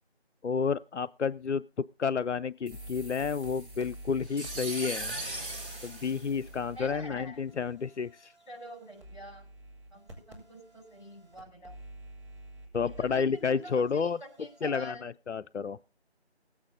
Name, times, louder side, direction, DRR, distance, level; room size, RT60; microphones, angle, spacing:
voice 1, 0.4-1.6 2.0-5.2 5.8-8.3 12.7-14.2 14.6-15.8, left 6 dB, 85° left, 12 dB, 0.6 m, -30 dB
sound 1, 2.7-14.6, right 1 dB, 25° right, 5.8 m, -49 dB
sound 2, 2.7-7.0, right 2 dB, 50° right, 4.2 m, -40 dB
voice 2, 6.7-7.4 8.5-9.5 9.9-11.8 12.8-15.0, equal, 45° left, 3 dB, 5.8 m, -46 dB
19.5 x 8.7 x 3.7 m, 0.32 s
figure-of-eight pair, 170°, 34 cm